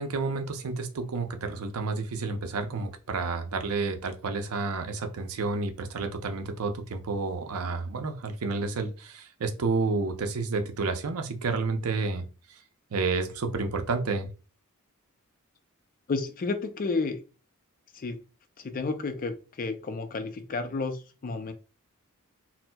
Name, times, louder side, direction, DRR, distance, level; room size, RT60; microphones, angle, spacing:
voice 1, 0.0-12.3 12.9-14.3, right 3 dB, 85° right, 0.6 m, -30 dB
voice 2, 16.1-17.2 17.9-18.2 18.6-21.5, left 3 dB, 40° left, 0.4 m, -31 dB
4.2 x 2.0 x 2.2 m
head